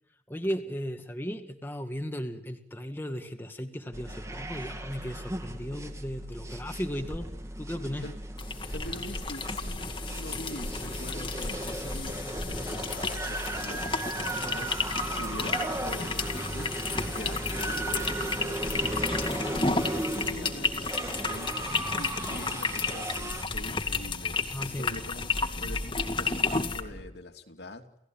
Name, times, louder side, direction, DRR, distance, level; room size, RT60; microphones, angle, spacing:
voice 1, 0.3-7.3 7.6-8.1 23.9-24.0 24.5-25.0, equal, 10° left, 5 dB, 2.0 m, -36 dB
sound 1, 3.9-23.4, right 1 dB, 15° right, 2.1 m, -36 dB
sound 2, 8.4-26.8, left 4 dB, 25° left, 2.1 m, -33 dB
sound 3, 8.4-27.1, equal, 35° right, 3.4 m, -45 dB
voice 2, 8.7-25.3 25.5-27.8, left 1 dB, 70° left, 5 dB, 2.9 m, -44 dB
29.5 x 17.5 x 9.1 m, 0.85 s
head